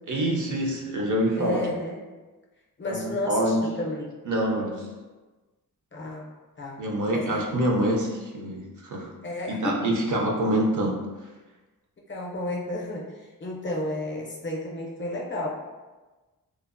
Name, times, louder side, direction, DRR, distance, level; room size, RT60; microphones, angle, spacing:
voice 1, 0.1-1.7 2.9-3.6 4.3-4.9 6.8-9.1 9.5-11.0, right 1 dB, 60° right, 0 dB, 0.5 m, -26 dB
voice 2, 1.4-2.0 2.8-4.2 5.9-6.3 6.6-6.8 7.1-7.5 9.2-9.8 12.1-15.5, left 1 dB, 35° left, -2 dB, 0.5 m, -32 dB
3.0 x 2.0 x 2.4 m, 1.2 s
wide cardioid pair, 95°, 35 cm